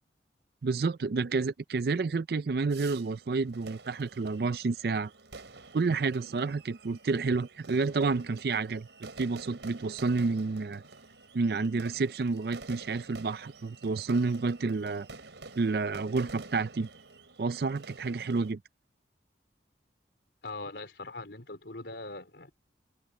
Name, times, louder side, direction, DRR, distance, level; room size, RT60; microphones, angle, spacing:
voice 1, 0.6-5.1 5.7-10.8 11.3-15.1 15.6-16.9 17.4-18.6, right 4 dB, 55° right, 0.4 m, -30 dB
sound 1, 2.7-18.5, right 3 dB, 80° right, 4.4 m, -49 dB
voice 2, 20.4-22.5, left 2 dB, 70° left, 4.0 m, -41 dB
head